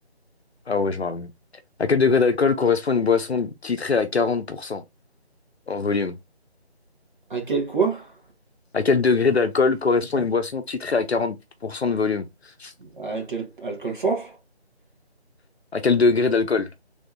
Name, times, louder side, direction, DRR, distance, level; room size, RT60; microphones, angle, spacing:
voice 1, 0.7-1.3 1.8-4.8 5.7-6.2 8.7-11.4 11.6-12.7 15.7-16.7, left 4 dB, 70° left, 0.6 m, -22 dB
voice 2, 7.3-8.1 13.0-14.3, right 5 dB, 45° right, 1.7 m, -26 dB
3.5 x 3.2 x 2.6 m
figure-of-eight pair, 165°, 33 cm